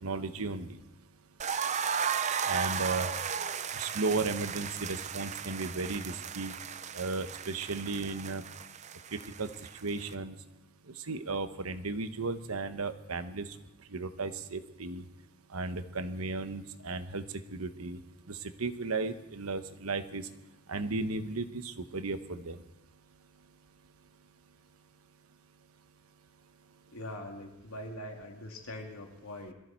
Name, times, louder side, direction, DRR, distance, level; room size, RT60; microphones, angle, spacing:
voice 1, 0.0-0.7 2.4-3.4 3.7-6.5 6.9-8.4 9.4-9.5 9.8-10.3 11.1-13.5 13.9-15.0 15.5-17.2 17.5-18.0 18.3-20.2 20.7-22.6, right 3 dB, 85° right, 10 dB, 1.1 m, -35 dB
sound 1, 1.4-10.1, right 7 dB, 30° right, 0.5 m, -35 dB
voice 2, 26.9-29.5, left 1 dB, 85° left, 1 dB, 2.8 m, -42 dB
22.0 x 14.5 x 4.5 m, 0.96 s
head